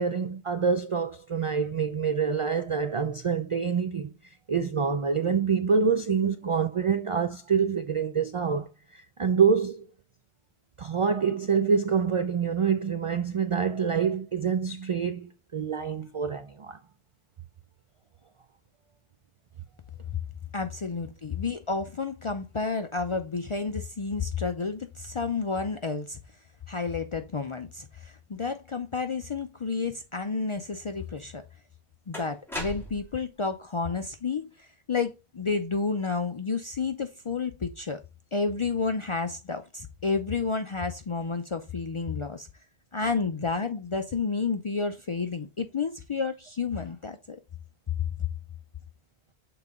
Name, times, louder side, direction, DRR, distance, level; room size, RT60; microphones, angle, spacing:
voice 1, 0.0-4.1 4.5-9.8 10.8-16.8, right 6 dB, 60° right, 0.3 m, -26 dB
voice 2, 20.5-26.2 26.7-31.4 32.1-38.0 38.3-42.5 42.9-47.4 48.0-48.1, left 4 dB, 45° left, 0.4 m, -30 dB
sound 1, 31.2-31.3 32.1-33.2, left 1 dB, ahead, 2.2 m, -37 dB
6.7 x 3.9 x 3.5 m
omnidirectional pair, 1.1 m